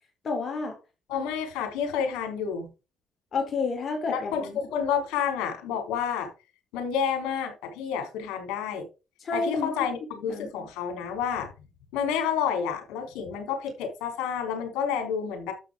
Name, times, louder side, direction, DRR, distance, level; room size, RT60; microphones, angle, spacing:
voice 1, 0.2-0.8 3.3-4.6 9.2-9.8 10.1-10.7, left 4 dB, 50° left, 3.7 m, -30 dB
voice 2, 1.1-2.7 4.1-6.3 6.7-8.9 9.3-11.5 11.9-15.5, left 7 dB, 90° left, 3.9 m, -29 dB
11.5 x 7.5 x 3.8 m
cardioid pair, 80°, 0 cm